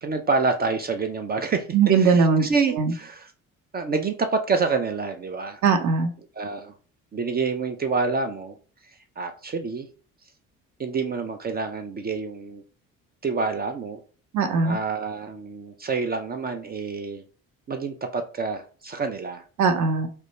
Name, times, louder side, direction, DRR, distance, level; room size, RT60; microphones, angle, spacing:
voice 1, 0.0-3.3 3.7-5.6 6.4-6.7 7.1-8.6 9.2-9.9 10.8-12.6 13.2-14.0 14.6-17.2 17.7-19.4, right 4 dB, 25° right, 5 dB, 0.3 m, -27 dB
voice 2, 1.7-2.4 2.8-2.9 5.6-6.1 14.3-14.8 19.6-20.1, right 5 dB, 45° right, 7 dB, 0.7 m, -19 dB
2.4 x 2.2 x 2.9 m, 0.38 s
hypercardioid pair, 55°, 41 cm